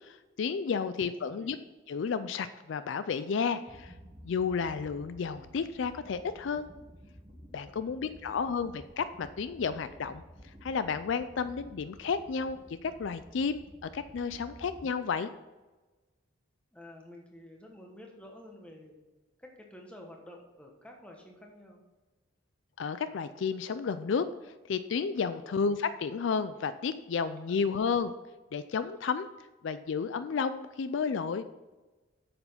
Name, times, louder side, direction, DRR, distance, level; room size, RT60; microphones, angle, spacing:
voice 1, 0.0-1.6 1.9-3.9 4.2-6.7 7.5-10.2 10.6-15.3 22.8-24.3 24.6-28.1 28.5-29.3 29.6-31.4, left 5 dB, 65° left, 13 dB, 0.4 m, -32 dB
voice 2, 0.8-1.6 7.7-8.4 16.7-19.0 19.4-21.8 25.3-25.5 27.5-27.8, left 1 dB, 5° left, 1 dB, 1.2 m, -51 dB
sound 1, 3.7-14.9, equal, 20° right, 1.4 m, -52 dB
8.4 x 6.8 x 5.6 m, 1.2 s
head